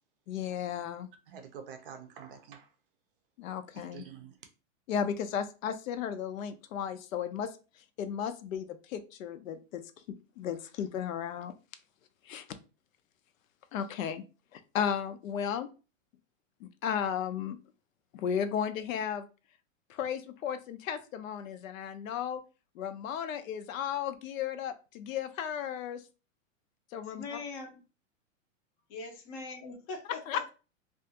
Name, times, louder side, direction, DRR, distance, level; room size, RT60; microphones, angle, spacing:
voice 1, 0.3-1.1 3.4-4.0 4.9-7.5 8.0-9.8 10.1-11.5 12.3-12.6 13.7-14.2 14.5-15.7 16.6-17.6 18.1-19.3 19.9-22.4 22.8-26.0 26.9-27.2 30.3-30.5, left 8 dB, 80° left, 0.5 m, -34 dB
voice 2, 1.3-2.7 3.7-4.4, right 7 dB, 45° right, 0.5 m, -47 dB
voice 3, 27.0-27.8 28.9-30.4, left 3 dB, 25° left, 0.5 m, -42 dB
2.4 x 2.3 x 2.7 m
supercardioid pair, 150°, 40 cm